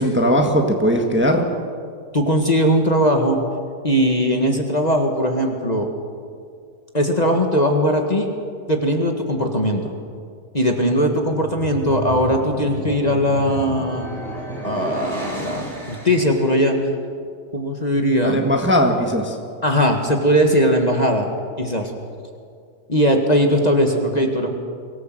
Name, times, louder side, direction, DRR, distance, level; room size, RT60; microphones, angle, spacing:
voice 1, 0.0-1.4 18.3-19.4, equal, 5° right, 2 dB, 1.6 m, -18 dB
voice 2, 2.1-3.4 3.8-5.9 6.9-8.3 8.7-9.9 10.5-14.1 14.6-16.8 17.5-18.4 19.6-21.3 21.6-21.9 22.9-24.5, equal, 25° left, 3 dB, 1.8 m, -19 dB
sound 1, 11.3-16.6, right 1 dB, 35° right, 3.3 m, -32 dB
24.0 x 18.0 x 7.8 m, 2.3 s
omnidirectional pair, 1.8 m